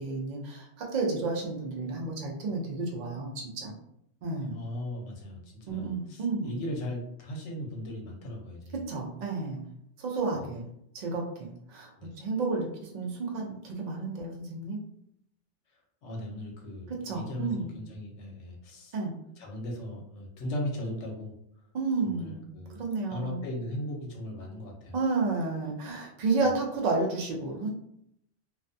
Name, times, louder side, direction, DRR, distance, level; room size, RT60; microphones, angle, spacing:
voice 1, 0.0-3.8 4.2-4.6 5.7-6.5 8.9-9.6 10.0-10.6 10.9-11.9 12.2-14.8 16.9-17.7 18.9-19.1 21.7-22.5 22.8-23.4 24.9-27.7, right 3 dB, 75° right, 0 dB, 0.4 m, -31 dB
voice 2, 4.5-8.8 12.0-12.1 16.0-18.9 19.4-21.3 22.0-22.8 23.1-25.0, left 1 dB, 75° left, 0 dB, 1.0 m, -38 dB
2.4 x 2.2 x 2.5 m, 0.74 s
omnidirectional pair, 1.3 m